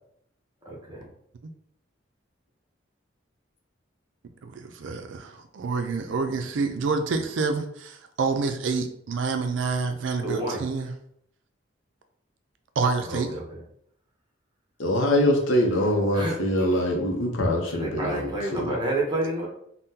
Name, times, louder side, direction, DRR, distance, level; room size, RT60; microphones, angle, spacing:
voice 1, 0.7-1.0 10.2-10.6 13.1-13.6 16.1-16.8 17.7-19.5, right 2 dB, 25° right, -3 dB, 0.8 m, -30 dB
voice 2, 4.4-10.9 12.8-13.4, right 4 dB, 70° right, 7 dB, 0.4 m, -28 dB
voice 3, 14.8-18.7, left 1 dB, 80° left, 2 dB, 0.6 m, -24 dB
3.6 x 2.1 x 2.7 m, 0.70 s
head